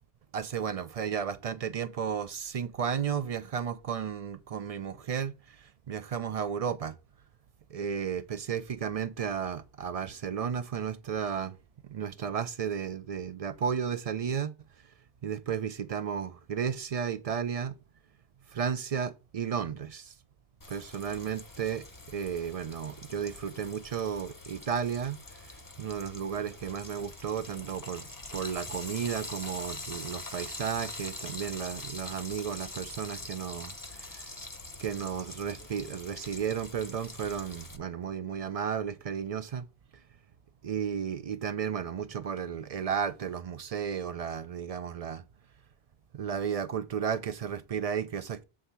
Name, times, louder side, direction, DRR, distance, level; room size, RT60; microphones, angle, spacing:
voice 1, 0.3-7.0 7.7-11.6 11.8-14.5 15.2-17.8 18.5-20.1 20.7-25.5 25.8-34.3 34.8-39.7 40.6-45.2 46.1-48.4, right 7 dB, 55° right, 0.4 m, -33 dB
Frying (food), 20.6-37.8, left 2 dB, 20° left, 0.7 m, -44 dB
7.6 x 3.4 x 5.5 m
omnidirectional pair, 1.0 m